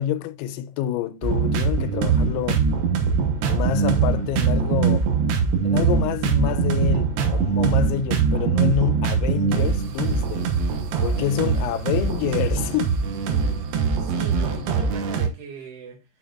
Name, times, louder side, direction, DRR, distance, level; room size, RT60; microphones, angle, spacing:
voice 1, 0.0-2.7 3.5-5.1 5.6-10.6 11.0-13.0, left 11 dB, 90° left, 3.1 m, -27 dB
sound 1, 1.2-15.3, right 5 dB, 75° right, 3.2 m, -22 dB
voice 2, 14.0-16.0, right 5 dB, 90° right, 4.8 m, -38 dB
12.0 x 4.5 x 2.4 m
omnidirectional pair, 5.2 m